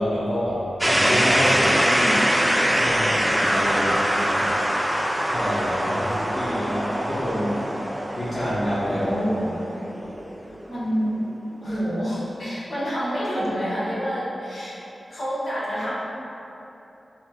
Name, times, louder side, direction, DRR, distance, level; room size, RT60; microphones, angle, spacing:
voice 1, 0.0-2.2 2.6-4.5 5.3-7.6 8.2-9.1 11.6-11.8, equal, 35° left, -13 dB, 1.5 m, -27 dB
sound 1, 0.8-10.6, equal, 5° right, 0.4 m, -23 dB
voice 2, 8.9-9.5 10.7-11.2 11.6-14.8 15.1-15.9, equal, 65° left, -9 dB, 1.3 m, -27 dB
4.6 x 2.1 x 3.9 m, 2.9 s
cardioid pair, 45°, 0 cm